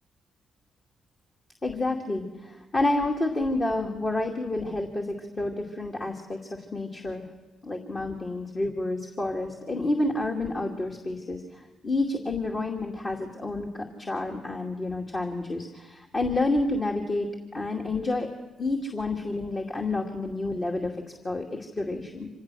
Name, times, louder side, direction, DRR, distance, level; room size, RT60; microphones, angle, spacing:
voice 1, 1.6-7.3 7.6-18.3 18.6-22.3, left 2 dB, 40° left, 0 dB, 2.4 m, -29 dB
26.0 x 18.0 x 6.3 m, 1.2 s
hypercardioid pair, 50°, 0 cm